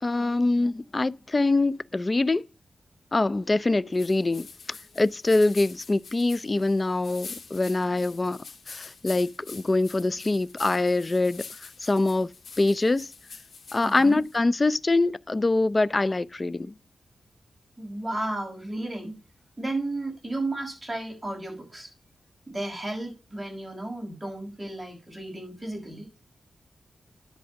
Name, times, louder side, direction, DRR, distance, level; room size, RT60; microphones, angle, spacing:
voice 1, 0.0-2.4 3.1-11.4 11.8-12.3 12.6-13.1 13.7-16.7, left 2 dB, 30° left, 0.5 m, -24 dB
sound 1, 3.9-14.4, left 5 dB, 70° left, 2.2 m, -45 dB
voice 2, 13.8-14.2 17.8-19.2 19.6-21.9 22.5-26.1, right 2 dB, 15° right, 5.7 m, -33 dB
10.5 x 4.7 x 7.5 m
wide cardioid pair, 90°, 0 cm